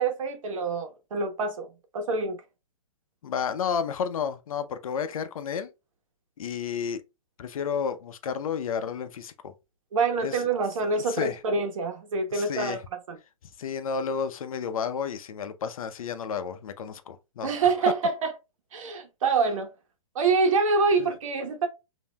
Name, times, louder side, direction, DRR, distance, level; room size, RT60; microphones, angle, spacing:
voice 1, 0.0-1.7 1.9-2.4 9.9-12.8 13.1-13.2 17.4-18.3 18.7-19.7 20.1-21.7, right 4 dB, 65° right, 1.2 m, -26 dB
voice 2, 3.2-5.7 6.4-7.0 7.4-9.5 10.2-10.4 10.9-11.4 12.3-12.8 13.6-17.7 21.0-21.1, left 6 dB, 70° left, 0.7 m, -31 dB
5.3 x 2.7 x 2.2 m
hypercardioid pair, 155°, 18 cm